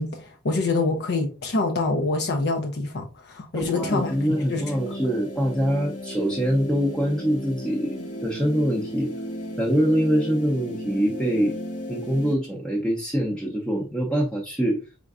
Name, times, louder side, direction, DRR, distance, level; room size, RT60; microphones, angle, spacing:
voice 1, 0.0-4.8, left 3 dB, 50° left, 0.6 m, -26 dB
voice 2, 3.5-9.1 9.6-11.6 11.9-14.8, equal, 5° left, 0.6 m, -24 dB
sound 1, 3.6-12.3, equal, 85° left, 1.2 m, -35 dB
4.3 x 3.6 x 2.4 m
head